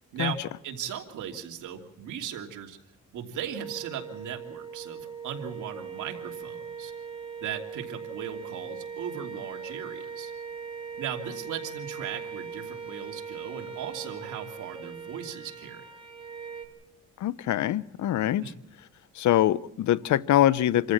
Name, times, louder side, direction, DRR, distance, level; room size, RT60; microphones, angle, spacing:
voice 1, 0.1-2.8 3.1-6.9 7.4-10.3 11.0-15.8 18.4-18.6, right 8 dB, 80° right, 2 dB, 3.0 m, -37 dB
sound 1, 3.6-16.7, right 6 dB, 20° right, 3.2 m, -40 dB
voice 2, 17.2-18.5 19.2-20.9, left 12 dB, 70° left, 18 dB, 0.8 m, -24 dB
27.5 x 14.5 x 7.4 m, 0.77 s
cardioid pair, 90°, 30 cm